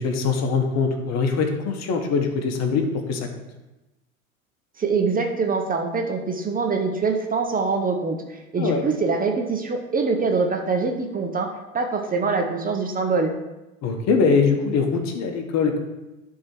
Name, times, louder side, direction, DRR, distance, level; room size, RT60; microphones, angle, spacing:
voice 1, 0.0-3.3 8.6-8.8 13.8-15.8, left 5 dB, 40° left, 5 dB, 1.2 m, -22 dB
voice 2, 4.8-11.5 11.7-13.3, right 4 dB, 20° right, 3 dB, 0.9 m, -24 dB
10.5 x 3.8 x 4.5 m, 1.0 s
figure-of-eight pair, 80°, 42 cm